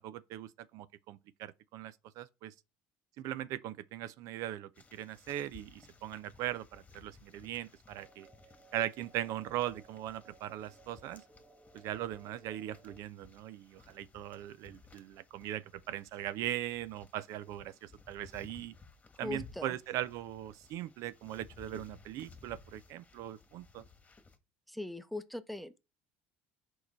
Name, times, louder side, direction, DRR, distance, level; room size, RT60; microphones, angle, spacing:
voice 1, 0.0-2.5 3.2-8.3 8.7-11.2 11.7-18.8 19.2-23.8, right 13 dB, 70° right, 0.5 m, -40 dB
sound 1, 4.7-24.4, left 4 dB, 20° left, 1.4 m, -58 dB
sound 2, 7.9-13.0, right 3 dB, 25° right, 1.7 m, -60 dB
voice 2, 19.2-19.7 24.7-25.8, left 2 dB, ahead, 0.7 m, -40 dB
6.3 x 4.7 x 4.3 m
supercardioid pair, 80°, 6 cm